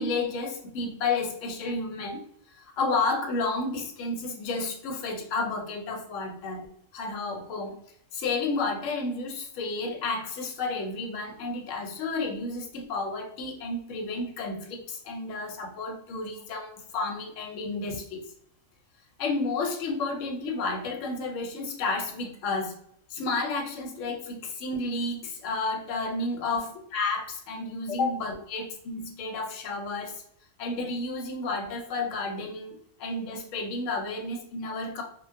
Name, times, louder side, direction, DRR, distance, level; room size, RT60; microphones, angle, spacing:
voice 1, 0.0-2.3 2.6-6.7 6.9-7.7 8.1-18.2 19.2-22.8 23.1-30.2 30.6-35.0, left 3 dB, 70° left, 2 dB, 0.9 m, -31 dB
2.3 x 2.2 x 2.4 m, 0.67 s
omnidirectional pair, 1.4 m